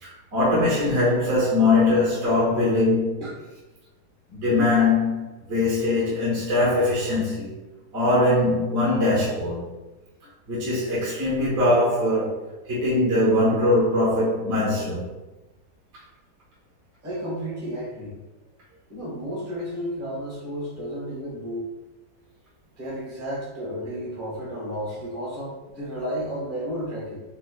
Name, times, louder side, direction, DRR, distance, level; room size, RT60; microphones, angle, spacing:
voice 1, 0.0-3.2 4.3-7.6 7.9-9.7 10.5-12.4 12.7-15.0, left 2 dB, 45° right, 1.3 m, -21 dB
voice 2, 17.0-18.2 18.7-21.7 22.8-27.2, equal, 10° right, 0.7 m, -32 dB
4.7 x 2.3 x 2.3 m
omnidirectional pair, 1.9 m